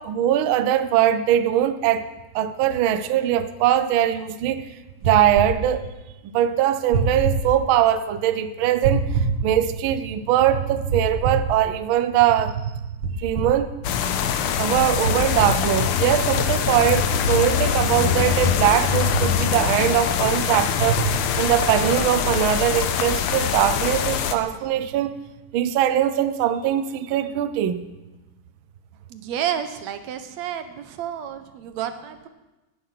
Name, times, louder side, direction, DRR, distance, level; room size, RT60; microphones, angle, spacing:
voice 1, 0.0-2.1 2.3-4.6 5.0-5.9 6.2-12.6 13.2-13.7 14.6-25.1 25.5-27.8, right 11 dB, 90° right, 1.1 m, -21 dB
sound 1, 5.0-5.5 6.9-7.4 8.8-9.3 10.9-11.5 13.0-13.5 15.0-15.6, right 4 dB, 55° right, 2.5 m, -24 dB
sound 2, 13.8-24.3, left 8 dB, 65° left, 1.5 m, -23 dB
voice 2, 29.1-32.3, right 9 dB, 70° right, 2.2 m, -30 dB
18.5 x 10.0 x 5.8 m
omnidirectional pair, 3.3 m